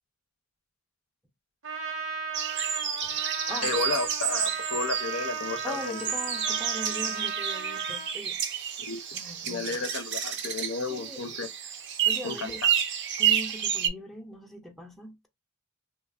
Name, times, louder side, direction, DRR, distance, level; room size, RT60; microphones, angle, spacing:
Trumpet, 1.6-8.1, right 6 dB, 80° right, 0.9 m, -36 dB
sound 1, 2.3-13.9, right 9 dB, 60° right, 0.5 m, -30 dB
voice 1, 3.6-6.1 8.8-9.0 9.5-11.5 12.2-12.7, left 4 dB, 80° left, 0.5 m, -32 dB
voice 2, 5.6-8.4 9.1-9.8 10.9-11.2 12.1-12.6 13.2-15.3, left 1 dB, ahead, 0.4 m, -40 dB
3.2 x 2.0 x 2.2 m
head